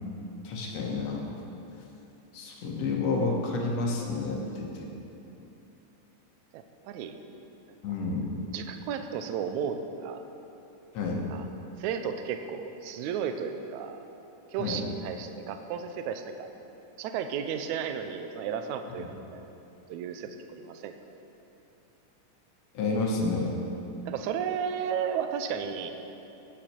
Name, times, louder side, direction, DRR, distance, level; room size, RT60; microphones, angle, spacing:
voice 1, 0.4-1.2 2.3-4.9 7.8-8.4 10.9-11.3 14.6-14.8 19.0-19.1 22.7-23.5, left 3 dB, 60° left, -1 dB, 2.1 m, -30 dB
voice 2, 6.5-7.2 8.5-10.2 11.3-11.4 11.8-14.0 14.5-16.5 17.0-19.4 19.9-20.9 24.1-25.9, right 7 dB, 80° right, 7 dB, 1.8 m, -33 dB
12.5 x 10.0 x 4.5 m, 3.0 s
omnidirectional pair, 3.7 m